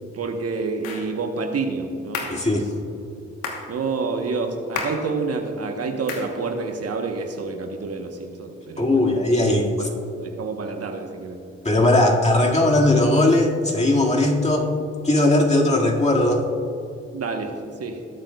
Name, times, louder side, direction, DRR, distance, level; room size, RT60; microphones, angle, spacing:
voice 1, 0.0-2.3 3.7-9.1 9.8-9.9 10.2-11.4 17.1-18.0, right 4 dB, 55° right, 4 dB, 1.1 m, -28 dB
sound 1, 0.8-1.1 2.1-2.4 3.4-3.7 4.7-5.1 6.1-6.3, left 5 dB, 85° left, 1.2 m, -30 dB
voice 2, 2.3-2.7 8.8-9.9 11.6-14.7 15.0-16.4, left 1 dB, 20° left, -1 dB, 2.0 m, -19 dB
18.0 x 8.8 x 2.3 m, 2.7 s
hypercardioid pair, 40°, 30 cm